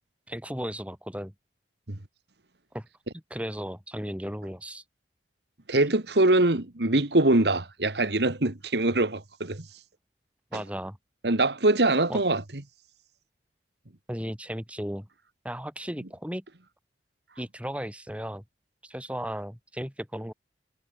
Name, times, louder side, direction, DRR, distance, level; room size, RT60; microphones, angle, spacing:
voice 1, 0.3-1.3 2.7-2.9 3.1-4.8 10.5-11.0 12.1-12.2 14.1-15.1 15.4-16.4 17.4-18.4 18.8-20.3, equal, 5° right, 6.3 m, -35 dB
voice 2, 5.7-9.7 10.5-10.6 11.2-12.4, right 2 dB, 75° right, 2.0 m, -23 dB
head